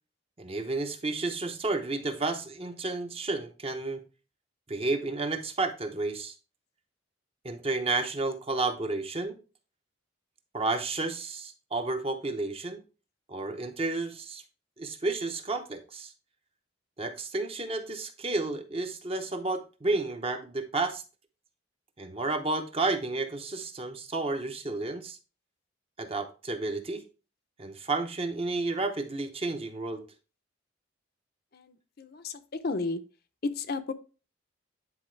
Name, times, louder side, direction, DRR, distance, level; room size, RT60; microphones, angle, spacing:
voice 1, 0.4-4.0 4.7-6.3 7.4-9.4 10.5-12.8 13.3-14.4 14.8-16.1 17.0-21.0 22.0-25.2 26.0-27.0 27.6-30.0, right 3 dB, 30° right, 0.7 m, -31 dB
voice 2, 31.5-33.0 33.4-33.9, left 3 dB, 50° left, 0.6 m, -33 dB
9.8 x 4.1 x 3.2 m
head